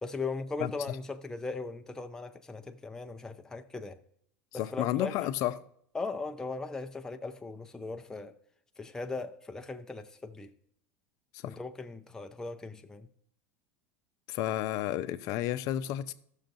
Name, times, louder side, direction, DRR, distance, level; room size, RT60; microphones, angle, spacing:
voice 1, 0.0-4.0 4.5-5.1 5.9-8.3 8.8-10.5 11.5-13.1, left 3 dB, 10° left, 0.5 m, -38 dB
voice 2, 0.6-1.0 4.5-5.6 11.3-11.6 14.3-16.1, left 13 dB, 50° left, 0.6 m, -32 dB
14.5 x 6.4 x 2.6 m
supercardioid pair, 135°, 8 cm